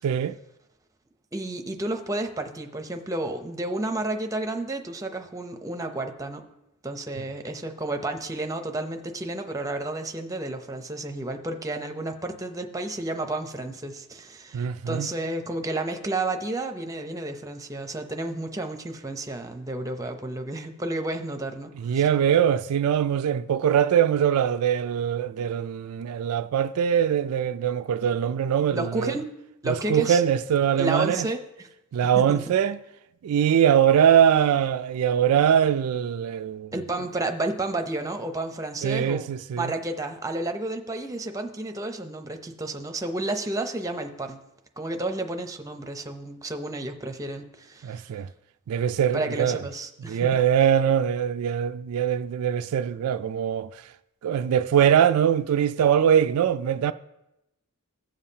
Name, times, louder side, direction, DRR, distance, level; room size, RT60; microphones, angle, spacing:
voice 1, 0.0-0.4 14.5-15.1 21.8-29.1 29.7-31.3 31.9-32.8 33.2-36.7 38.8-39.7 47.8-48.3 48.7-49.6 50.1-53.7 54.2-56.9, right 9 dB, 75° right, 0.3 m, -22 dB
voice 2, 1.3-6.5 6.8-22.1 28.7-29.3 29.6-30.2 30.8-31.7 32.1-32.4 36.7-39.3 39.5-44.4 44.8-48.1 49.1-50.4, right 2 dB, 15° right, 0.7 m, -31 dB
16.0 x 7.2 x 2.8 m
head